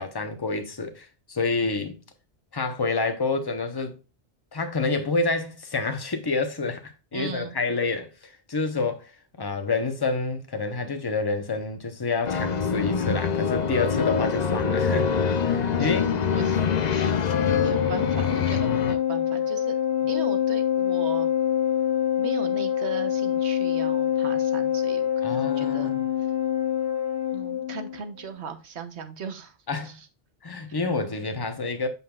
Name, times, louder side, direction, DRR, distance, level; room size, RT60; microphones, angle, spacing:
voice 1, 0.0-2.0 2.5-4.0 4.5-9.1 9.4-15.1 15.5-16.1 25.2-26.1 29.7-29.9 30.4-31.9, left 3 dB, 20° left, 0.9 m, -28 dB
voice 2, 7.1-7.5 15.8-15.9 16.3-17.2 17.5-19.7 20.1-21.3 22.2-25.9 27.3-29.6 29.8-30.1, right 6 dB, 70° right, 1.3 m, -38 dB
sound 1, 12.2-18.9, left 6 dB, 45° left, 0.6 m, -25 dB
Organ, 17.2-28.0, left 10 dB, 70° left, 1.1 m, -25 dB
7.7 x 5.5 x 2.4 m
omnidirectional pair, 1.2 m